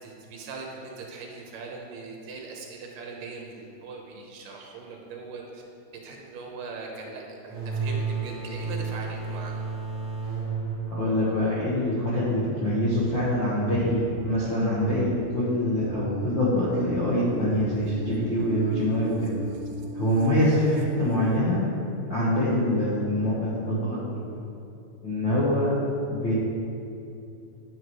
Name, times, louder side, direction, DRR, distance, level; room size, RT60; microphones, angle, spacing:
voice 1, 0.0-5.6 6.0-9.5, right 4 dB, 70° right, 0 dB, 2.5 m, -40 dB
sound 1, 7.5-12.9, right 4 dB, 55° right, 0.9 m, -33 dB
voice 2, 10.9-19.3 19.9-21.6 22.1-24.2 25.0-25.7 26.1-26.3, left 1 dB, 75° left, -9 dB, 1.1 m, -25 dB
sound 2, 12.9-21.4, right 3 dB, 85° right, 1.9 m, -39 dB
9.7 x 8.7 x 3.1 m, 2.7 s
omnidirectional pair, 4.4 m